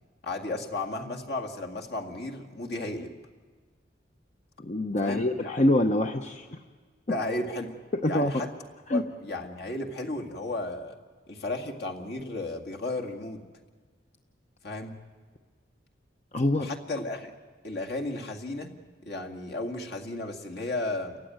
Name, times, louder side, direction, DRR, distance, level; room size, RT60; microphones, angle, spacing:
voice 1, 0.2-3.1 5.0-5.6 7.1-7.7 8.0-8.5 8.9-10.9 11.3-13.4 14.6-15.0 16.6-17.3 17.6-18.7 19.0-21.2, left 2 dB, 60° left, 2 dB, 2.1 m, -34 dB
voice 2, 4.6-6.5 8.0-8.3 8.9-9.0 16.3-16.7, left 1 dB, 40° left, 5 dB, 0.8 m, -25 dB
29.5 x 15.0 x 9.4 m, 1.5 s
head